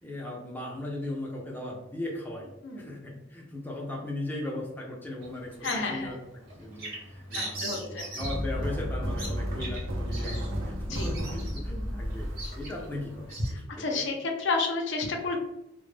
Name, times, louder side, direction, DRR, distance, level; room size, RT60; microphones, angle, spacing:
voice 1, 0.0-2.5 2.8-6.2 6.5-14.0, left 1 dB, 10° left, -3 dB, 0.4 m, -38 dB
Bird vocalization bird call bird song, 5.2-13.5, right 1 dB, 45° right, 0.8 m, -40 dB
voice 2, 5.6-6.2 7.3-8.1 10.8-11.1 12.8-12.9 13.5-15.4, left 3 dB, 60° left, 2 dB, 0.5 m, -31 dB
sound 1, 8.2-13.4, equal, 85° right, 0.5 m, -33 dB
2.1 x 2.0 x 3.2 m, 0.90 s
head